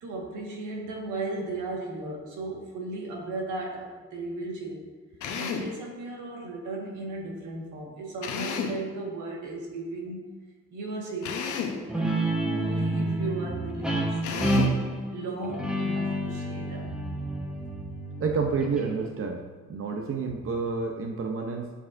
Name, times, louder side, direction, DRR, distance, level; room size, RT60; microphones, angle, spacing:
voice 1, 0.0-4.9 5.4-10.2 10.7-12.1 12.4-14.7 15.1-17.0, right 2 dB, 85° right, -1 dB, 1.7 m, -36 dB
Drill, 5.2-5.8 8.2-8.9 11.2-11.8 14.2-14.8, left 6 dB, 75° left, 0.9 m, -32 dB
Guitar, 11.9-19.1, right 1 dB, 5° right, 1.1 m, -29 dB
voice 2, 18.2-21.7, right 4 dB, 45° right, 3 dB, 0.7 m, -29 dB
8.3 x 6.9 x 2.6 m, 1.4 s
cardioid pair, 90°, 30 cm